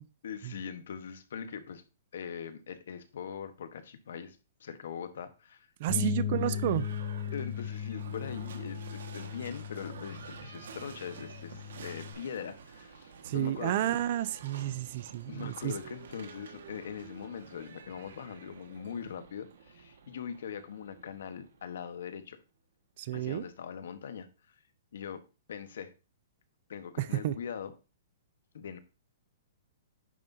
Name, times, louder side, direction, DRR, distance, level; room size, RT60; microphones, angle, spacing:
voice 1, 0.2-1.8 2.1-6.2 7.3-14.0 15.3-22.4 23.1-24.5 24.9-25.2 25.5-25.9 26.7-27.7 28.5-28.8, left 7 dB, 70° left, 1.2 m, -41 dB
voice 2, 5.8-6.9 13.2-15.7 23.0-23.4 27.0-27.3, right 13 dB, 35° right, 0.5 m, -31 dB
Bass guitar, 5.9-12.1, left 9 dB, 20° left, 2.4 m, -37 dB
Livestock farm animals working animals / Bell, 6.2-22.1, right 6 dB, 75° right, 1.7 m, -50 dB
10.0 x 7.3 x 2.8 m
hypercardioid pair, 175°, 0 cm